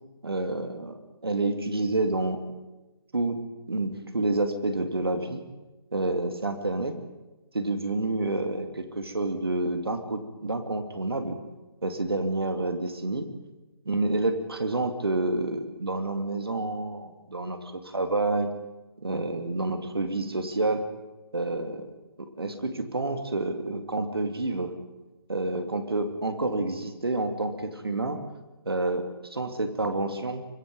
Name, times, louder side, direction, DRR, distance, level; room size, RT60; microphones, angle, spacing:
voice 1, 0.2-2.4 3.1-3.4 3.7-5.4 5.9-6.9 7.5-11.4 11.8-13.3 13.9-18.5 19.0-20.8 21.3-21.9 22.4-24.7 25.3-28.2 28.7-30.4, right 2 dB, 75° right, 7 dB, 2.7 m, -28 dB
24.5 x 22.5 x 5.4 m, 1.1 s
figure-of-eight pair, 140°, 13 cm